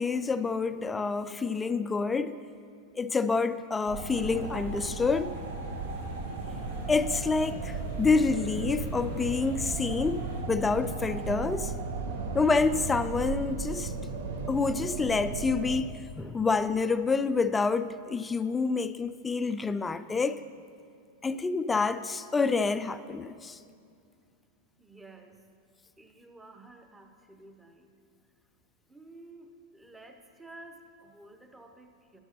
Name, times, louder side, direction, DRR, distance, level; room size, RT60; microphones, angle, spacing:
voice 1, 0.0-2.4 2.9-5.3 6.9-11.7 12.3-13.9 14.5-20.4 21.2-23.6, left 4 dB, 15° left, 13 dB, 0.3 m, -28 dB
sound 1, 3.9-15.8, right 4 dB, 60° right, 0.8 m, -36 dB
sound 2, 4.1-10.4, equal, 85° right, 2.8 m, -40 dB
voice 2, 24.8-25.4 26.0-27.9 28.9-32.2, right 2 dB, 10° right, 5 dB, 0.8 m, -52 dB
12.5 x 11.5 x 2.9 m, 2.3 s
figure-of-eight pair, 90°, 0 cm